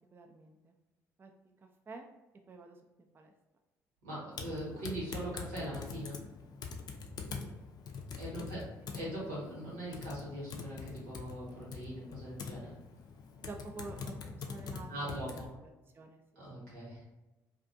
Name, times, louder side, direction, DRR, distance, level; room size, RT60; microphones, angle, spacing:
voice 1, 0.1-0.7 1.2-1.3 1.9-2.1 2.5-3.3 7.3-7.5 13.4-15.1 15.6-16.2 16.6-16.7, right 3 dB, 25° right, 3 dB, 0.3 m, -49 dB
voice 2, 4.0-6.2 8.2-8.6 8.9-12.7 14.9-15.5 16.4-17.0, right 1 dB, 85° right, -6 dB, 1.1 m, -41 dB
Typing, 4.3-15.5, left 5 dB, 50° left, 0.4 m, -44 dB
2.5 x 2.3 x 2.5 m, 1.0 s
hypercardioid pair, 55°, 9 cm